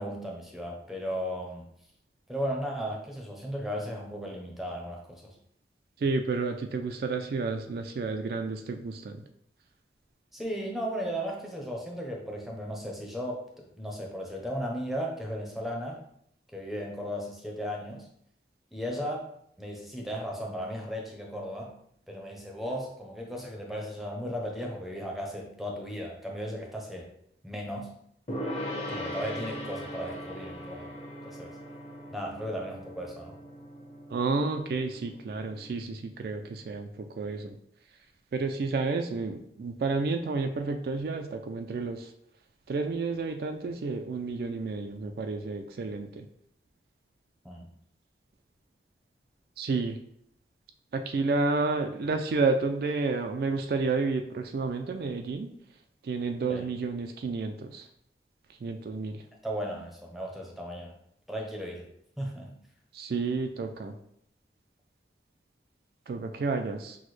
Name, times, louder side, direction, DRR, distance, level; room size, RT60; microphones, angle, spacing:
voice 1, 0.0-1.6 2.3-5.2 10.3-16.0 16.5-18.1 18.7-19.2 19.6-21.7 22.1-27.1 27.4-27.9 28.9-30.9 31.2-31.5 32.1-33.3 47.4-47.7 56.5-56.7 59.4-60.9 61.3-61.8 62.2-62.5, equal, ahead, -1 dB, 0.6 m, -35 dB
voice 2, 6.0-9.2 34.1-37.6 38.3-42.1 42.7-46.3 49.6-50.0 50.9-55.5 56.0-57.9 58.6-59.2 62.9-63.9 66.1-67.0, right 4 dB, 55° right, 5 dB, 0.3 m, -30 dB
Gong, 28.3-35.7, equal, 35° left, 0.9 m, -39 dB
6.0 x 2.1 x 3.1 m, 0.70 s
head